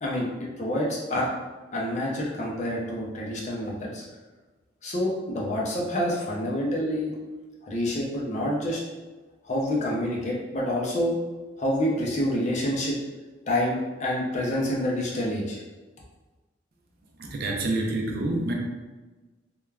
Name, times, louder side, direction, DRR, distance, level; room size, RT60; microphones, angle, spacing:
voice 1, 0.0-1.3 1.7-4.0 4.8-7.1 7.6-8.8 9.4-11.2 11.6-13.0 13.5-15.6, left 1 dB, 35° left, -3 dB, 0.5 m, -27 dB
voice 2, 17.2-18.5, right 2 dB, 50° right, 0 dB, 0.4 m, -27 dB
3.2 x 2.2 x 2.3 m, 1.2 s
head